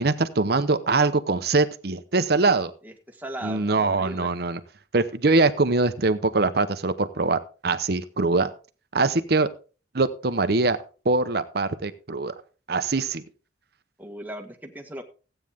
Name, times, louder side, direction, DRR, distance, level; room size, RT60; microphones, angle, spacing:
voice 1, 0.0-2.7 3.4-4.6 4.9-8.5 8.9-9.5 9.9-10.8 11.0-12.3 12.7-13.2, right 3 dB, 60° right, 11 dB, 0.9 m, -23 dB
voice 2, 2.8-4.3 14.0-15.0, right 1 dB, 10° right, 3 dB, 1.6 m, -38 dB
15.5 x 9.0 x 3.6 m, 0.36 s
head